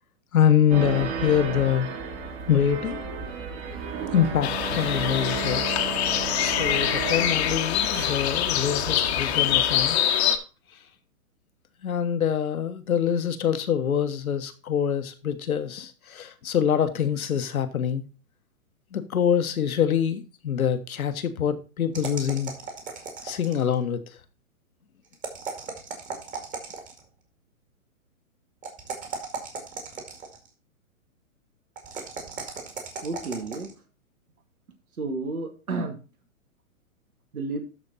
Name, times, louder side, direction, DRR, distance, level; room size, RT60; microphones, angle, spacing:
voice 1, 0.3-1.9 2.5-3.0 4.1-5.8 6.4-10.0 11.8-18.0 18.9-22.5 23.2-24.0, left 8 dB, 80° left, 1.5 m, -25 dB
sound 1, 0.7-9.9, right 5 dB, 45° right, 3.1 m, -33 dB
sound 2, 4.4-10.4, left 11 dB, 50° left, 1.3 m, -25 dB
sound 3, 21.9-23.7 25.1-27.0 28.6-30.5 31.8-33.7, right 5 dB, 20° right, 2.1 m, -36 dB
voice 2, 33.0-33.7 35.0-36.0 37.3-37.6, right 3 dB, 90° right, 2.5 m, -31 dB
13.0 x 4.4 x 4.1 m
hypercardioid pair, 135°, 42 cm